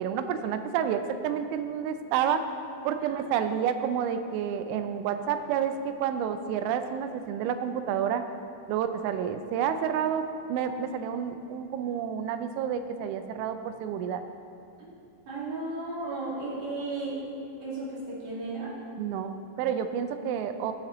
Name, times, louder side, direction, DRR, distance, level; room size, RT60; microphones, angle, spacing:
voice 1, 0.0-2.5 2.8-8.2 8.7-14.2 19.0-20.7, right 8 dB, 85° right, 8 dB, 3.0 m, -29 dB
voice 2, 15.3-17.2 17.6-18.7, right 2 dB, 50° right, -7 dB, 3.2 m, -34 dB
16.5 x 7.2 x 3.0 m, 2.7 s
omnidirectional pair, 5.5 m